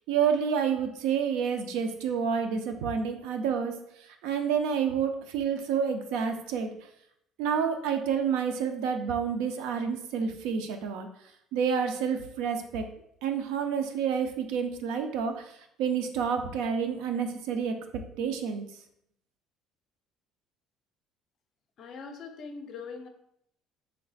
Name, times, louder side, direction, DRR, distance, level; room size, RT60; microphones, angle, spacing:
voice 1, 0.1-3.7 4.2-6.7 7.4-11.1 11.5-12.8 13.2-15.5 15.8-17.8 18.2-18.6, right 7 dB, 90° right, 6 dB, 0.4 m, -29 dB
voice 2, 21.8-23.1, left 5 dB, 40° left, 5 dB, 0.5 m, -41 dB
3.2 x 2.4 x 3.9 m, 0.74 s
cardioid pair, 160°, 0 cm